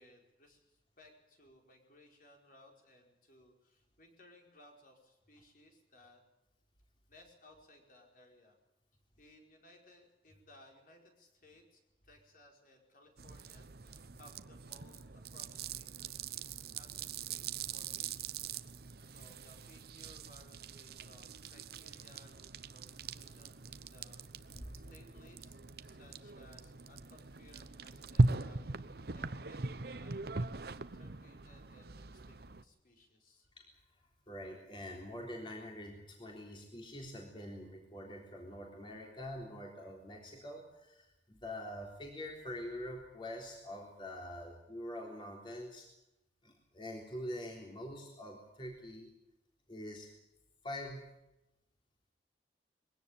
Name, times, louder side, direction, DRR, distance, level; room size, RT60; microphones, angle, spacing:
voice 1, 0.0-6.2 7.1-8.6 9.2-18.2 19.0-33.5, left 1 dB, 50° left, 2 dB, 5.0 m, -62 dB
sound 1, 13.2-32.6, right 3 dB, 60° right, 0.9 m, -40 dB
sound 2, 24.5-26.0, equal, ahead, 4.6 m, -52 dB
voice 2, 34.3-45.9 46.4-49.1 49.7-50.1 50.6-51.1, left 1 dB, 30° left, 0 dB, 3.7 m, -45 dB
22.0 x 17.0 x 9.0 m, 0.90 s
head